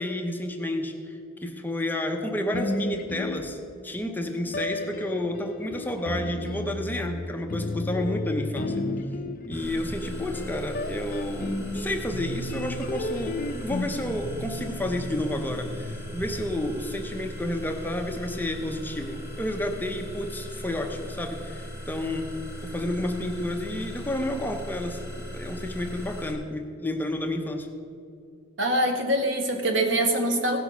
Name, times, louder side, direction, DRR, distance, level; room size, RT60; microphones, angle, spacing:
voice 1, 0.0-3.6 3.8-8.8 9.5-22.4 22.6-27.7, left 1 dB, 10° left, 4 dB, 0.7 m, -31 dB
sound 1, 2.5-4.0 4.5-16.7, left 2 dB, 45° left, 0.6 m, -34 dB
sound 2, 9.5-26.3, equal, 15° right, 1.9 m, -39 dB
voice 2, 28.6-30.6, right 1 dB, 65° right, 3 dB, 1.6 m, -24 dB
16.5 x 6.3 x 5.8 m, 2.5 s
head